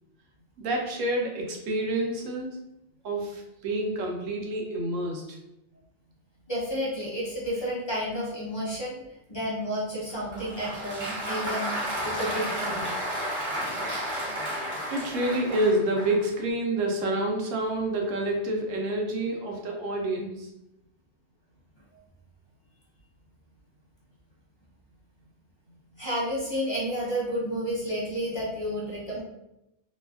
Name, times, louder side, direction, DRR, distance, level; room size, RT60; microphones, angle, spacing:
voice 1, 0.6-2.5 3.0-5.4 14.9-20.5, right 1 dB, 85° right, 0 dB, 1.0 m, -28 dB
voice 2, 6.5-9.0 9.3-11.7 12.0-12.9 26.0-29.2, equal, 40° left, -6 dB, 0.4 m, -31 dB
Applause, 10.1-16.3, equal, 55° right, 1.4 m, -32 dB
2.7 x 2.4 x 2.3 m, 0.88 s
omnidirectional pair, 1.3 m